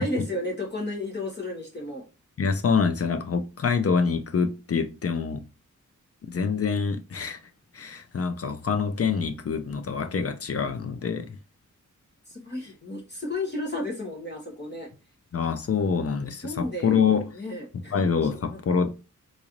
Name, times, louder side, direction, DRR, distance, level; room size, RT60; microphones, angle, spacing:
voice 1, 0.0-2.1 12.3-14.9 16.4-17.0 17.3-18.1 18.5-18.6, left 1 dB, 35° left, 1.2 m, -33 dB
voice 2, 2.4-5.4 6.2-7.4 7.7-11.4 15.3-17.3 17.9-18.9, left 6 dB, 50° left, 0.5 m, -26 dB
4.0 x 2.5 x 3.0 m
wide cardioid pair, 85°, 30 cm